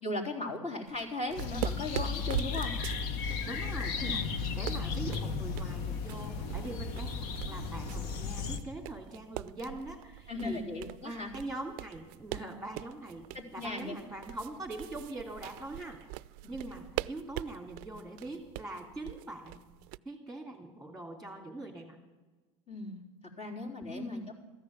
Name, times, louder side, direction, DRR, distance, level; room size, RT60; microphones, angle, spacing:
voice 1, 0.0-2.8 4.0-4.2 10.3-11.3 13.3-13.9 16.4-16.5 22.7-23.0 23.4-24.3, left 2 dB, 40° left, -4 dB, 3.9 m, -37 dB
sound 1, 0.9-20.0, right 19 dB, 60° right, 0.4 m, -42 dB
sound 2, 1.3-8.6, left 5 dB, 65° left, 1.3 m, -35 dB
voice 2, 3.4-4.2 4.5-10.6 11.0-13.2 13.5-16.0 16.5-19.6 20.0-22.0 23.9-24.3, right 2 dB, ahead, 1 dB, 2.8 m, -42 dB
14.0 x 9.7 x 7.5 m, 1.2 s
hypercardioid pair, 90°, 17 cm